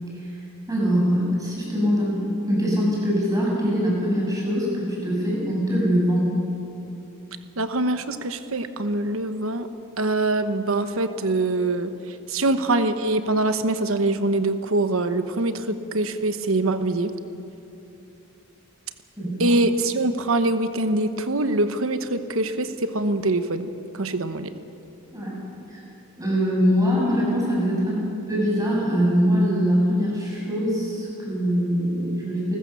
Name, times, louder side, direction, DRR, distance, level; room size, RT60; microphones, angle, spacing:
voice 1, 0.7-6.4 19.2-19.6 25.1-25.4 25.7-25.8 26.2-32.6, equal, 15° right, -4 dB, 6.7 m, -23 dB
voice 2, 7.6-9.7 10.0-17.1 19.4-23.7 23.9-24.5, right 2 dB, 65° right, 10 dB, 1.1 m, -24 dB
29.0 x 14.5 x 6.9 m, 2.9 s
head